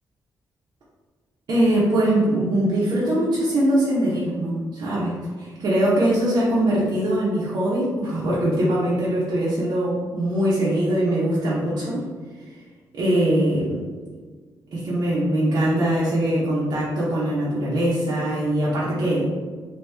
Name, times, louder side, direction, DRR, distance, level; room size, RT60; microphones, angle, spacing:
voice 1, 1.5-12.0 12.9-13.8 14.7-19.3, right 1 dB, 60° right, -8 dB, 0.8 m, -22 dB
2.9 x 2.7 x 3.4 m, 1.5 s
cardioid pair, 125°, 7 cm